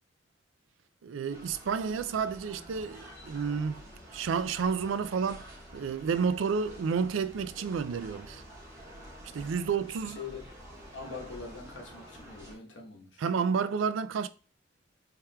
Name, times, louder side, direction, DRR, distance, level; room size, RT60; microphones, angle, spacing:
voice 1, 1.0-3.8 4.1-8.4 9.3-10.2 13.2-14.3, right 6 dB, 85° right, 0.4 m, -30 dB
sound 1, 1.3-12.5, equal, 20° right, 1.4 m, -49 dB
voice 2, 9.4-9.8 10.1-10.4 10.9-13.2, left 4 dB, 85° left, 1.1 m, -44 dB
4.3 x 3.5 x 2.2 m
head